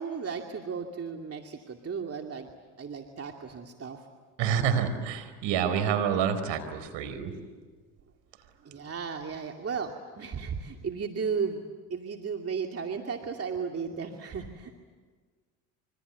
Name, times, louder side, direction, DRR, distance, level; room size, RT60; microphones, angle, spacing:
voice 1, 0.0-2.5 2.8-4.0 8.6-11.6 11.9-14.8, right 6 dB, 30° right, 3 dB, 2.5 m, -35 dB
voice 2, 4.4-7.3, right 8 dB, 60° right, 10 dB, 4.5 m, -28 dB
26.5 x 24.5 x 8.2 m, 1.5 s
hypercardioid pair, 80°, 48 cm